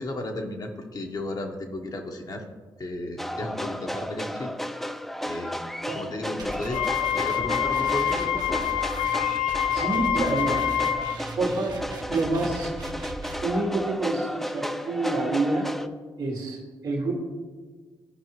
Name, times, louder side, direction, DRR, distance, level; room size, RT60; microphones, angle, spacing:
voice 1, 0.0-2.4 2.8-4.5 5.2-5.6 5.9-8.7, left 1 dB, 50° left, 3 dB, 1.1 m, -34 dB
sound 1, 3.2-15.9, equal, 5° left, 0.5 m, -33 dB
sound 2, 6.4-13.4, right 2 dB, 50° right, 1.0 m, -39 dB
Wind instrument woodwind instrument, 6.7-11.2, left 10 dB, 85° left, 0.4 m, -26 dB
voice 2, 9.7-10.6 11.4-11.8 12.1-12.7 13.4-15.7 16.2-17.1, right 2 dB, 90° right, -11 dB, 2.1 m, -27 dB
13.5 x 4.7 x 3.1 m, 1.4 s
cardioid pair, 60°, 9 cm